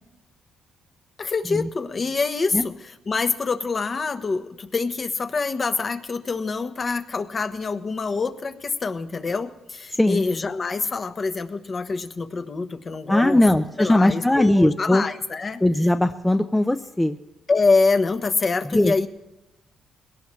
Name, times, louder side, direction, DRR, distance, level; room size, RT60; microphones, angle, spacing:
voice 1, 1.2-2.7 3.1-13.4 13.8-15.6 17.5-19.1, left 4 dB, 35° left, 9 dB, 1.1 m, -25 dB
voice 2, 9.9-10.2 13.1-15.0 15.6-17.2 18.7-19.1, left 1 dB, 10° left, 7 dB, 0.6 m, -19 dB
21.5 x 17.0 x 3.2 m, 0.98 s
cardioid pair, 90°, 0 cm